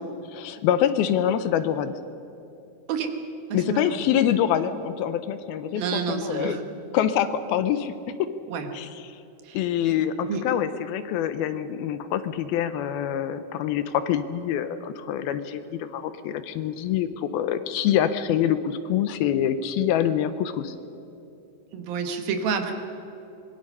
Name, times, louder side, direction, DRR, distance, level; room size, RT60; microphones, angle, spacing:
voice 1, 0.3-2.0 3.5-6.6 6.9-7.9 8.2-8.3 8.7-8.9 9.5-20.7, left 10 dB, 80° left, 11 dB, 2.6 m, -25 dB
voice 2, 3.5-4.0 5.7-6.6 8.5-8.7 9.4-9.6 10.3-10.5 21.7-22.7, right 6 dB, 70° right, 6 dB, 3.1 m, -29 dB
24.5 x 21.5 x 5.5 m, 2.9 s
omnidirectional pair, 4.5 m